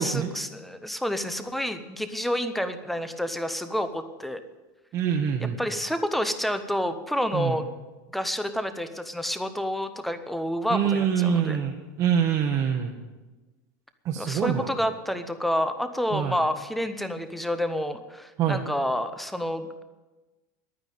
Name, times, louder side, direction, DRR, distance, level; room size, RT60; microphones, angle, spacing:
voice 1, 0.0-4.4 5.4-7.7 8.1-11.6 14.2-19.8, equal, ahead, 10 dB, 0.7 m, -29 dB
voice 2, 4.9-5.6 7.3-7.6 10.7-12.9 14.0-14.7 16.1-16.4 18.4-18.6, right 8 dB, 30° right, -1 dB, 1.1 m, -25 dB
11.0 x 9.5 x 9.1 m, 1.2 s
supercardioid pair, 165°, 10 cm